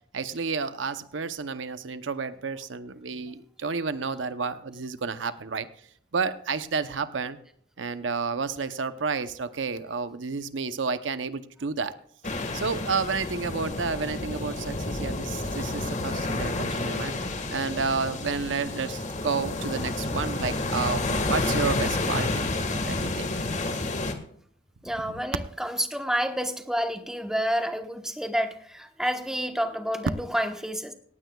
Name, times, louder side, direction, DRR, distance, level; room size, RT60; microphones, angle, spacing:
voice 1, 0.1-5.7 6.1-7.4 7.8-11.9 12.5-22.5 22.8-23.3 25.1-25.2, right 4 dB, 90° right, 11 dB, 0.8 m, -31 dB
sound 1, 12.2-24.1, left 2 dB, 40° left, 1.6 m, -30 dB
voice 2, 24.8-30.9, equal, 5° right, 5 dB, 1.1 m, -29 dB
18.0 x 15.5 x 2.3 m, 0.63 s
head